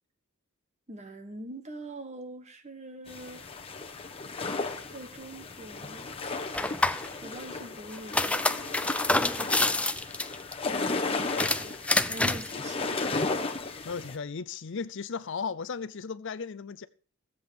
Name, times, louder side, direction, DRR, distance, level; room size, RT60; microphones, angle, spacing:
voice 1, 0.9-3.4 4.9-6.1 7.2-8.8 9.4-10.0 10.8-11.8 12.0-13.3, right 1 dB, 30° right, 1.5 m, -44 dB
sound 1, 3.1-14.2, left 3 dB, 25° left, 1.2 m, -35 dB
sound 2, 6.5-7.1 7.9-10.5 11.3-12.5, left 2 dB, 5° left, 0.4 m, -27 dB
voice 2, 13.8-16.9, left 5 dB, 60° left, 0.6 m, -35 dB
15.5 x 7.9 x 5.1 m
head